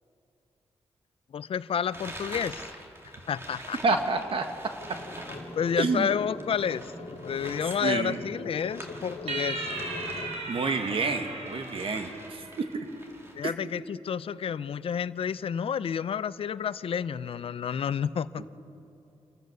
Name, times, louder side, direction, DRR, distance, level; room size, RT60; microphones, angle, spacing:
voice 1, 1.3-2.7 3.3-3.8 5.6-9.7 13.3-18.4, left 7 dB, 65° left, 16 dB, 0.5 m, -30 dB
sound 1, 1.9-11.2 11.4-13.4, right 1 dB, 25° right, 2.1 m, -46 dB
voice 2, 3.8-4.4 5.8-6.1 7.8-8.2 10.5-12.9 13.4-13.5 18.4-18.5, right 4 dB, 60° right, 6 dB, 1.5 m, -28 dB
sound 2, 4.8-10.5, left 2 dB, 85° left, 2.0 m, -41 dB
sound 3, 9.3-12.8, right 3 dB, 80° right, 3.3 m, -37 dB
27.5 x 14.5 x 6.7 m, 2.7 s
wide cardioid pair, 125°, 10 cm